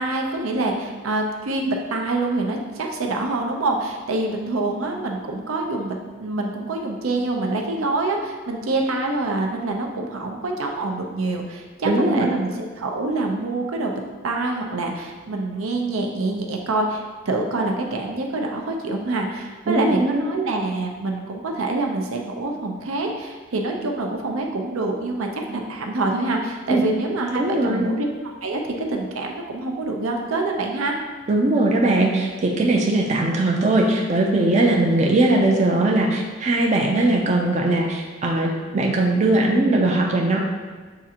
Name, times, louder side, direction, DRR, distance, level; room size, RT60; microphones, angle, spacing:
voice 1, 0.0-13.9 14.2-28.1 28.4-31.0, right 2 dB, 85° right, 2 dB, 0.6 m, -26 dB
voice 2, 11.8-12.3 19.7-20.3 26.7-26.8 27.4-27.8 31.3-40.4, right 2 dB, 35° right, 0 dB, 0.4 m, -20 dB
6.6 x 2.5 x 2.8 m, 1.4 s
head